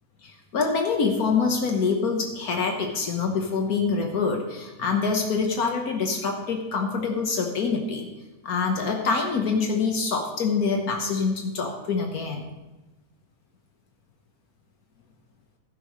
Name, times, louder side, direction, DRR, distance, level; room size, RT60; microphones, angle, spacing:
voice 1, 0.5-8.1 8.4-12.5, left 4 dB, 80° left, 2 dB, 1.6 m, -25 dB
15.5 x 12.0 x 3.2 m, 1.1 s
omnidirectional pair, 1.6 m